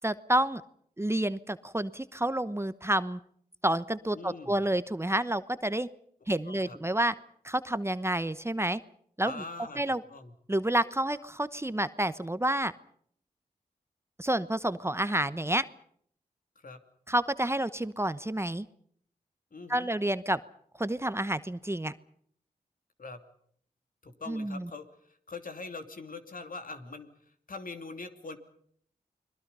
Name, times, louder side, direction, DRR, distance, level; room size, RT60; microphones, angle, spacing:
voice 1, 0.0-0.6 1.0-3.2 3.6-5.9 6.3-7.1 7.4-8.8 9.2-9.4 9.8-10.0 10.5-12.7 14.2-15.7 17.1-18.7 19.7-20.4 20.8-21.9 24.3-24.7, right 1 dB, 15° right, 14 dB, 1.0 m, -29 dB
voice 2, 4.1-4.6 6.5-6.8 9.2-10.3 16.6-16.8 19.5-19.9 23.0-23.2 24.0-28.4, left 3 dB, 60° left, 7 dB, 2.8 m, -43 dB
30.0 x 21.5 x 5.5 m, 0.63 s
cardioid pair, 40°, 16 cm